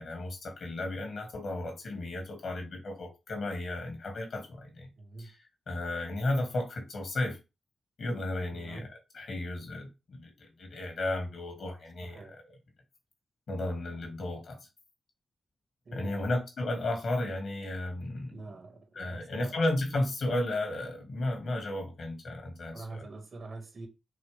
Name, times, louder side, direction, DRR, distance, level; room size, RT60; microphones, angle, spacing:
voice 1, 0.0-4.9 5.2-5.4 5.7-7.4 8.0-8.9 9.1-12.4 13.5-14.6 15.9-18.4 19.0-23.1, left 1 dB, 70° left, 2.0 m, -34 dB
voice 2, 5.0-5.3 8.5-8.9 12.0-12.3 14.0-14.1 15.9-16.4 18.3-19.6 22.7-23.9, right 3 dB, 60° right, 1.6 m, -45 dB
4.9 x 3.2 x 3.3 m
supercardioid pair, 40°, 0 cm